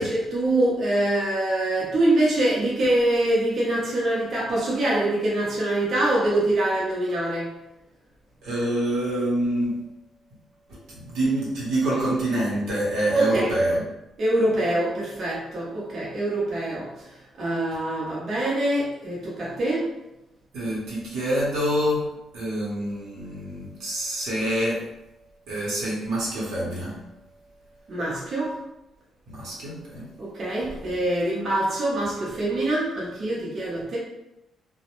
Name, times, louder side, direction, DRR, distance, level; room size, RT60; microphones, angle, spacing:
voice 1, 0.0-7.5 13.1-13.5 14.2-16.9 17.4-19.8 27.9-28.5 30.2-34.0, right 1 dB, 50° right, -6 dB, 0.7 m, -24 dB
voice 2, 8.4-9.8 10.9-13.8 20.5-22.0 22.3-24.8 25.5-27.0 29.3-30.0 30.7-30.8, right 1 dB, 80° right, -5 dB, 0.8 m, -26 dB
2.2 x 2.0 x 2.9 m, 0.92 s
cardioid pair, 90°, 0 cm